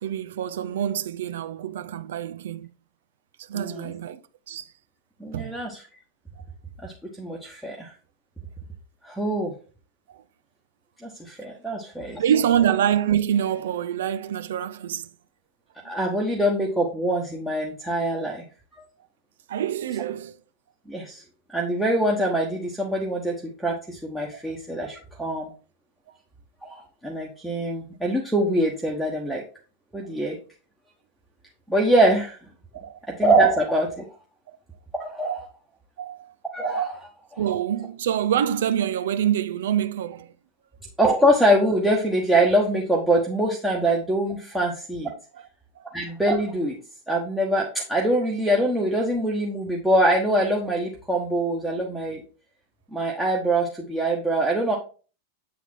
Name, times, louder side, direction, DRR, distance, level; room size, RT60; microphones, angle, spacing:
voice 1, 0.0-2.7 3.5-4.2 4.5-4.7 5.3-5.6 10.1-10.2 12.2-15.1 18.2-18.3 19.5-20.3 24.3-24.4 32.7-33.0 34.5-34.6 36.0-36.3 37.4-40.3 45.8-45.9, right 9 dB, 60° right, 0.5 m, -26 dB
voice 2, 3.5-3.9 5.2-5.8 6.8-6.9 7.2-7.9 9.0-9.5 11.0-12.2 15.8-18.4 20.9-21.2 21.5-25.5 26.6-29.4 29.9-30.4 31.7-32.4 33.2-34.0 35.0-35.5 36.5-37.4 41.0-45.1 45.9-46.8 47.1-52.2 52.9-54.8, right 1 dB, ahead, 1.2 m, -24 dB
8.3 x 4.1 x 4.3 m
figure-of-eight pair, 90°, 0 cm